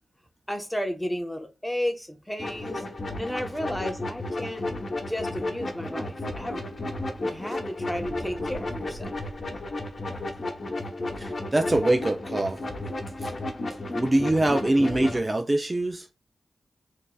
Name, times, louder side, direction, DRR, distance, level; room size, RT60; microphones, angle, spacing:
voice 1, 0.5-2.8 3.2-4.6 5.1-6.7 7.2-9.1, equal, 10° left, 1.0 m, -33 dB
sound 1, 2.4-15.2, left 2 dB, 55° left, 0.9 m, -33 dB
sound 2, 7.2-7.6 8.0-10.5, right 1 dB, 70° right, 1.3 m, -46 dB
voice 2, 11.2-12.6 13.2-13.3 13.7-16.1, right 1 dB, 30° right, 0.5 m, -24 dB
4.4 x 2.7 x 2.3 m
cardioid pair, 55°, 0 cm